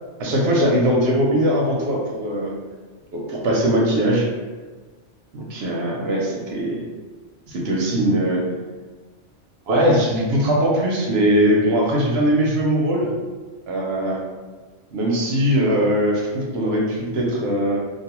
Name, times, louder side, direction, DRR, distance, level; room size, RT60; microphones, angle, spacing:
voice 1, 0.2-2.5 3.1-4.3 5.3-6.8 7.5-8.4 9.7-13.1 13.7-14.2 14.9-17.8, equal, 70° right, -2 dB, 0.8 m, -20 dB
2.3 x 2.3 x 2.9 m, 1.4 s
omnidirectional pair, 1.2 m